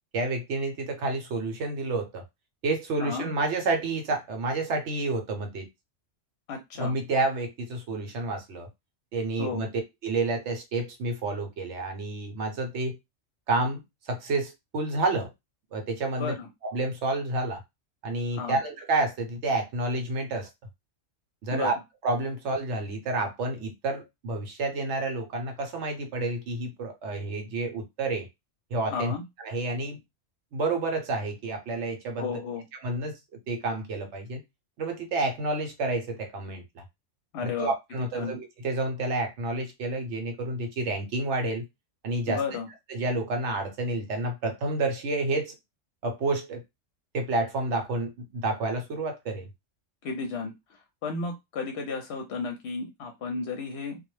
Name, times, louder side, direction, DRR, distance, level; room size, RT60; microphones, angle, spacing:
voice 1, 0.1-2.2 2.6-5.7 6.8-8.7 9.1-9.7 10.0-13.0 13.5-15.3 15.7-16.3 16.6-17.6 18.0-20.5 21.4-21.8 22.0-28.3 28.7-29.1 29.4-30.0 30.5-32.4 32.8-33.2 33.5-34.4 34.8-36.8 37.4-41.6 42.0-42.4 42.9-45.5 46.0-46.6 47.1-49.5, right 2 dB, 70° right, 0.9 m, -29 dB
voice 2, 3.0-3.3 6.5-7.0 9.4-9.7 16.2-16.5 18.3-18.6 21.5-21.7 28.9-29.2 32.2-32.6 37.3-37.7 38.1-38.4 42.3-42.7 50.0-50.5 51.0-54.0, left 4 dB, 65° left, 0.8 m, -33 dB
2.3 x 2.0 x 3.0 m
omnidirectional pair, 1.3 m